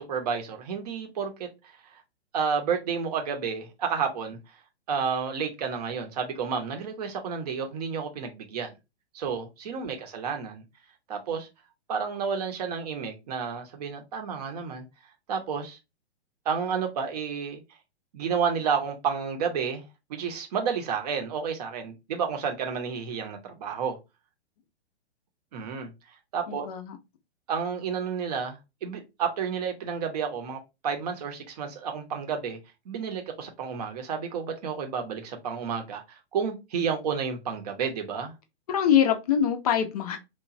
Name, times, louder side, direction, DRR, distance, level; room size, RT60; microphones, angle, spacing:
voice 1, 0.0-1.7 2.3-4.4 4.9-8.8 9.1-10.6 11.1-11.5 11.9-14.9 15.3-15.8 16.4-17.6 18.1-24.0 25.5-26.7 27.5-32.6 32.9-38.3, right 6 dB, 35° right, 0.7 m, -31 dB
voice 2, 26.5-27.0 38.7-40.2, left 9 dB, 35° left, 0.5 m, -24 dB
2.9 x 2.2 x 2.4 m
figure-of-eight pair, 115°, 34 cm